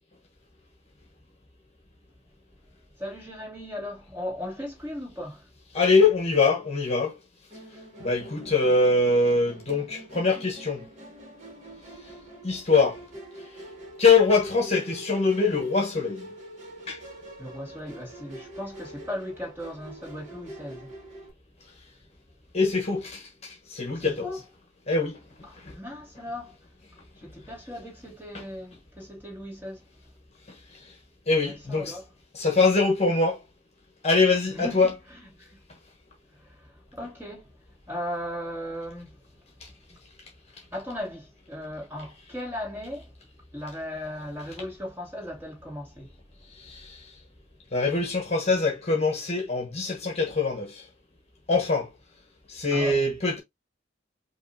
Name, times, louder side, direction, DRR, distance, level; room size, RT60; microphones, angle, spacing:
voice 1, 3.0-5.5 17.4-20.9 23.9-24.4 25.5-26.6 27.2-29.9 31.4-32.0 34.5-35.5 36.3-37.5 37.9-39.2 39.9-40.0 40.7-43.1 43.5-46.1 52.7-53.0, left 1 dB, 15° right, 2.7 m, -37 dB
voice 2, 5.7-7.2 8.0-10.8 12.4-13.0 14.0-16.3 16.9-17.0 22.5-24.3 24.9-25.2 25.6-25.7 28.3-28.4 30.7-30.9 31.3-32.0 32.3-33.4 34.0-34.9 46.5-47.1 47.7-50.8 51.5-51.9 52.5-53.4, left 3 dB, 35° left, 1.2 m, -23 dB
Musical instrument, 7.5-21.3, right 1 dB, 40° right, 2.0 m, -45 dB
5.4 x 3.0 x 2.7 m
head